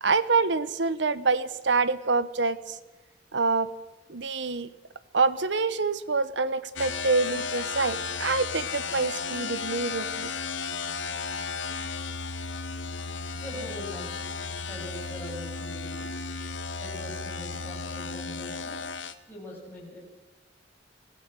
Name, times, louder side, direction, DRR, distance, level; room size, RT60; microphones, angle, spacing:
voice 1, 0.0-2.8 3.3-3.7 4.1-4.7 5.1-10.3, right 4 dB, 70° right, 15 dB, 1.0 m, -26 dB
sound 1, 6.8-19.1, left 5 dB, 85° left, 1.4 m, -34 dB
voice 2, 13.4-16.1 16.8-18.9 19.3-20.0, left 1 dB, 10° left, -4 dB, 7.6 m, -42 dB
25.5 x 16.0 x 6.3 m, 1.2 s
head